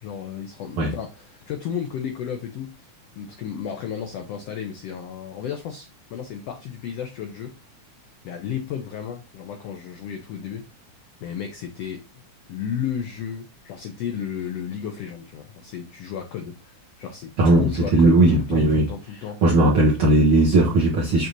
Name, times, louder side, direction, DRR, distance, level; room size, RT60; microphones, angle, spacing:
voice 1, 0.0-7.6 8.2-10.7 11.2-12.0 12.5-19.4, left 8 dB, 90° left, 1.4 m, -33 dB
voice 2, 17.4-18.8 19.4-21.3, right 2 dB, 65° right, 1.3 m, -17 dB
6.7 x 2.6 x 3.0 m
omnidirectional pair, 3.7 m